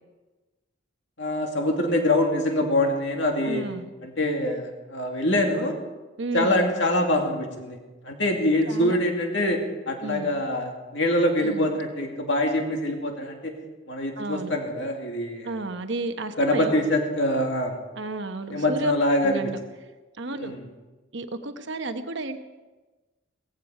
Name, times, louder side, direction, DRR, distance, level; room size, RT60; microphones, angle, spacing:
voice 1, 1.2-3.6 4.0-5.8 6.3-7.8 8.0-13.5 13.9-15.6 16.4-17.8 18.5-19.5 20.4-20.7, left 1 dB, 55° left, 2 dB, 2.5 m, -24 dB
voice 2, 3.4-3.9 6.2-6.7 8.7-9.0 10.0-10.3 11.4-11.7 14.2-14.5 15.4-16.8 17.9-18.9 19.2-19.6 20.2-20.5 21.1-22.4, right 2 dB, 55° right, 7 dB, 1.1 m, -32 dB
17.5 x 15.5 x 5.0 m, 1.2 s
head